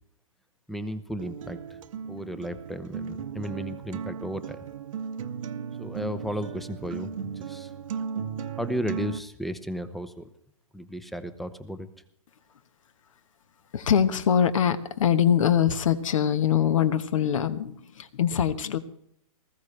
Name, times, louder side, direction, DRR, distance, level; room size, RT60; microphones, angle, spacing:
voice 1, 0.7-1.6 2.1-4.6 5.8-7.7 8.6-10.3 10.7-11.9, equal, ahead, 12 dB, 0.7 m, -34 dB
Acoustic guitar, 1.2-9.2, right 7 dB, 65° right, 1.0 m, -36 dB
voice 2, 13.7-18.8, left 9 dB, 65° left, 11 dB, 1.2 m, -23 dB
19.5 x 15.0 x 3.3 m, 0.72 s
hypercardioid pair, 145°, 18 cm